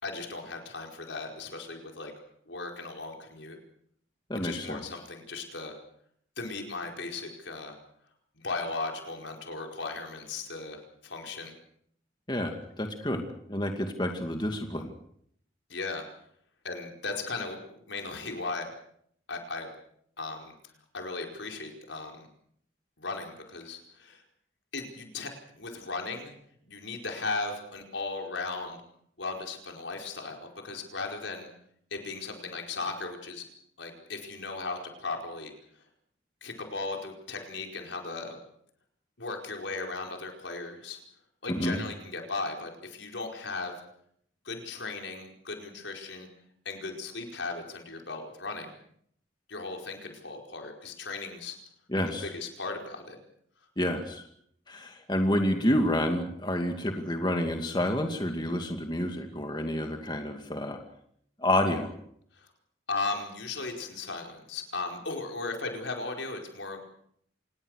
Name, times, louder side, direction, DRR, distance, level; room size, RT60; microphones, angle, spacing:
voice 1, 0.0-2.1 2.5-3.6 4.3-5.7 6.4-7.8 8.3-11.5 15.7-16.0 16.6-18.7 19.3-19.7 20.2-20.5 20.9-22.3 23.0-24.2 24.7-26.4 26.6-28.8 29.2-31.5 31.9-33.5 33.8-35.5 36.4-38.4 39.2-41.0 41.4-43.7 44.4-46.3 46.6-48.7 49.5-51.6 52.2-53.2 62.3-62.5 62.9-66.8, left 3 dB, 75° left, 2 dB, 4.8 m, -37 dB
voice 2, 4.3-4.8 12.3-14.9 41.5-41.8 51.9-52.3 53.8-54.2 54.7-60.8 61.4-61.9, left 1 dB, 25° left, 4 dB, 2.3 m, -29 dB
27.0 x 20.0 x 6.5 m, 0.67 s
head